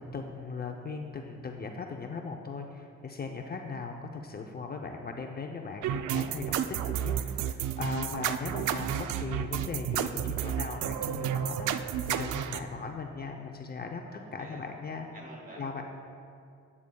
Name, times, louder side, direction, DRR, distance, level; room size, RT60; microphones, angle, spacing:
voice 1, 0.0-15.1 15.6-15.8, left 4 dB, 30° left, 3 dB, 0.6 m, -39 dB
sound 1, 5.8-12.6, right 10 dB, 80° right, 0.5 m, -31 dB
voice 2, 14.0-14.6 15.1-15.8, right 1 dB, 30° right, -2 dB, 2.4 m, -48 dB
12.5 x 9.5 x 2.3 m, 2.4 s
cardioid pair, 90°, 30 cm